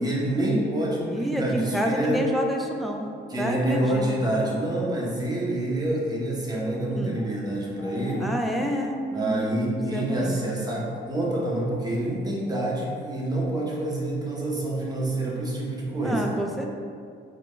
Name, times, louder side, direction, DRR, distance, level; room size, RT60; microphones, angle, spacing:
voice 1, 0.0-2.2 3.3-8.3 9.1-16.3, right 1 dB, 20° right, -4 dB, 0.9 m, -27 dB
voice 2, 1.0-3.1 3.4-4.2 7.0-7.2 8.2-9.5 9.9-10.4 16.0-16.7, equal, ahead, 1 dB, 0.4 m, -28 dB
sound 1, 3.4-4.3 7.1-7.3 7.8-8.6, left 2 dB, 70° left, 0.9 m, -43 dB
4.1 x 2.5 x 3.2 m, 2.2 s
cardioid pair, 90°, 20 cm